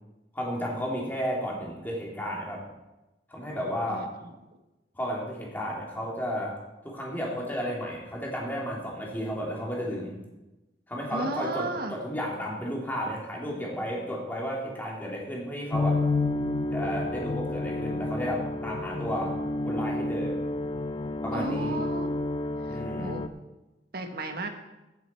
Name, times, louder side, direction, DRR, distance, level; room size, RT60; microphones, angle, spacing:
voice 1, 0.3-2.6 3.3-4.1 4.9-6.6 6.8-10.2 10.9-16.0 16.7-19.3 19.6-20.3 21.2-21.8 22.7-23.2, equal, 10° left, -3 dB, 2.7 m, -33 dB
voice 2, 11.1-12.0 21.3-22.2 22.6-23.3 23.9-24.5, right 2 dB, 60° right, 5 dB, 1.2 m, -34 dB
sound 1, 15.7-23.3, left 2 dB, 30° left, 0.4 m, -30 dB
15.5 x 7.4 x 4.5 m, 1.0 s
head